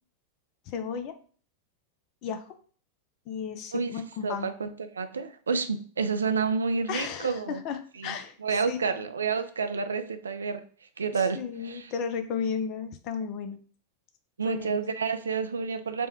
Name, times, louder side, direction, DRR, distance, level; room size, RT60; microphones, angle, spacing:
voice 1, 0.7-1.1 2.2-2.5 3.3-4.5 6.9-9.1 11.2-13.6 14.4-14.8, left 6 dB, 45° left, 9 dB, 0.5 m, -34 dB
voice 2, 4.2-7.6 8.0-8.1 8.4-10.6 11.0-11.9 14.4-16.1, right 5 dB, 80° right, 9 dB, 0.4 m, -29 dB
3.4 x 2.2 x 4.3 m, 0.43 s
hypercardioid pair, 95°, 0 cm